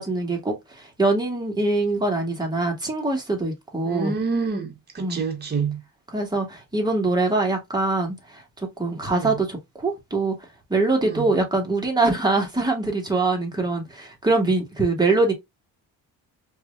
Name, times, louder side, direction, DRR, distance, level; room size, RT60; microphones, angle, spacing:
voice 1, 0.0-4.1 5.0-5.2 6.1-10.3 10.7-15.3, right 3 dB, 10° right, 2.2 m, -23 dB
voice 2, 3.9-5.8 9.2-9.3 11.1-11.2, right 5 dB, 25° right, 1.5 m, -27 dB
4.6 x 3.1 x 2.7 m
cardioid pair, 100°, 36 cm